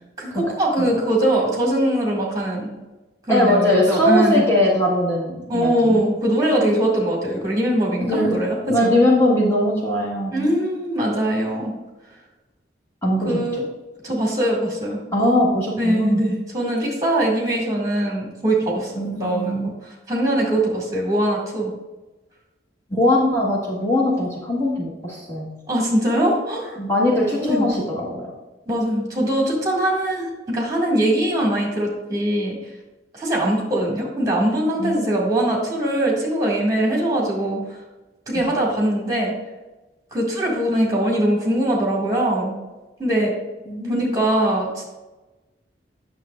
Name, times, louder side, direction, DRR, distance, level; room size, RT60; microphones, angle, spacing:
voice 1, 0.2-2.7 3.3-4.4 5.5-8.9 10.3-11.7 13.2-13.6 14.0-15.0 15.8-19.7 20.1-21.7 25.7-26.8 27.4-27.7 28.7-32.6 33.1-37.6 38.3-39.3 40.1-42.5 43.0-43.3 43.9-44.8, right 1 dB, 20° right, -3 dB, 2.0 m, -21 dB
voice 2, 3.3-6.0 8.0-8.4 8.7-10.5 13.0-13.4 15.1-16.2 18.9-19.7 22.9-25.5 26.8-28.3 34.8-35.1 43.7-44.2, left 1 dB, 15° left, -6 dB, 1.4 m, -20 dB
9.1 x 6.7 x 2.4 m, 1.1 s
head